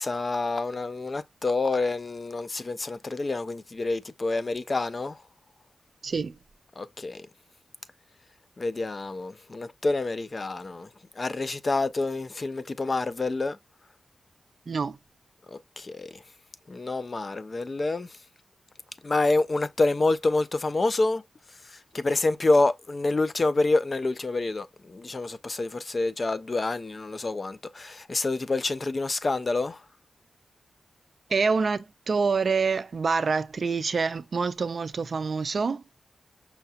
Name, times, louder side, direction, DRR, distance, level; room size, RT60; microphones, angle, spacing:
voice 1, 0.0-5.2 6.8-7.3 8.6-10.9 11.2-13.6 15.5-16.2 16.7-18.2 19.0-21.2 21.6-29.8, left 2 dB, 35° left, 0.4 m, -27 dB
voice 2, 6.0-6.4 14.7-15.0 31.3-35.8, right 4 dB, 55° right, 0.4 m, -26 dB
5.7 x 2.3 x 2.7 m
wide cardioid pair, 125°, 0 cm